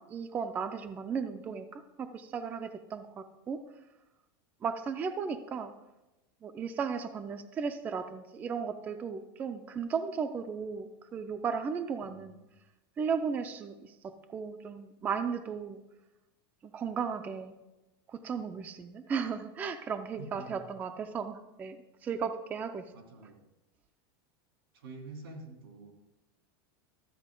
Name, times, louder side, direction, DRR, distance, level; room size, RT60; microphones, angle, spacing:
voice 1, 0.0-3.6 4.6-5.7 6.4-12.4 13.0-15.8 16.6-17.6 18.1-22.9, right 6 dB, 15° right, 8 dB, 0.3 m, -35 dB
voice 2, 12.0-12.5 20.2-20.6 22.9-23.5 24.7-25.9, right 3 dB, 90° right, 2 dB, 2.7 m, -47 dB
13.0 x 8.0 x 3.7 m, 0.98 s
supercardioid pair, 165°, 12 cm